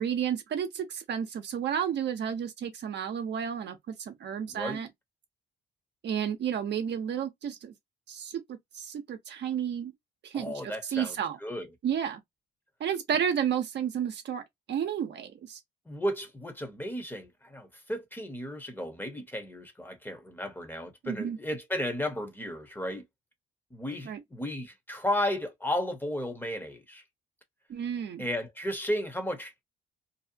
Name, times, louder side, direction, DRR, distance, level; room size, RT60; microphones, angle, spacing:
voice 1, 0.0-4.9 6.0-7.7 8.1-8.4 8.7-9.9 10.2-11.4 11.8-12.2 12.8-14.4 14.7-15.6 21.0-21.4 24.0-24.2 27.7-28.3, right 8 dB, 60° right, 0.7 m, -31 dB
voice 2, 4.5-4.8 10.3-11.1 11.4-11.7 15.9-23.0 23.7-27.0 28.2-29.6, left 1 dB, 10° left, 0.8 m, -34 dB
2.7 x 2.0 x 2.6 m
cardioid pair, 90°, 20 cm